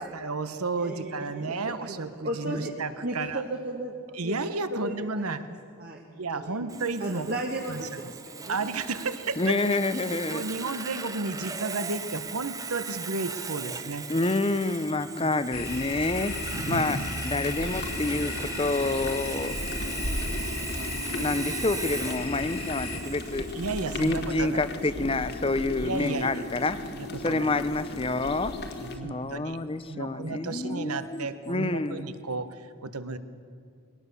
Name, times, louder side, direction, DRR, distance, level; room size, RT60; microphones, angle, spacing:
voice 1, 0.0-3.4 4.2-5.4 6.2-7.3 7.7-7.8 8.5-9.6 10.3-14.0 15.1-15.3 16.7-16.9 23.5-24.7 25.0-25.1 25.8-26.4 26.9-27.5 28.8-29.6 29.9-33.2, right 3 dB, 80° right, 11 dB, 1.2 m, -33 dB
voice 2, 0.7-2.7 3.0-3.9 4.2-4.3 4.7-5.3 5.8-6.6 7.0-8.6, right 1 dB, 45° right, 1 dB, 1.5 m, -35 dB
Sawing, 6.7-24.2, right 5 dB, 15° right, 0.6 m, -39 dB
voice 3, 9.4-10.4 14.1-16.4 16.7-19.6 21.2-23.5 23.9-26.8 27.2-28.6 29.0-32.1, left 2 dB, 25° left, 12 dB, 0.7 m, -28 dB
sound 1, 15.5-23.0, left 3 dB, 75° left, 2.6 m, -35 dB
sound 2, 17.4-29.0, left 1 dB, 45° left, 1.6 m, -37 dB
21.5 x 18.0 x 6.9 m, 2.2 s
head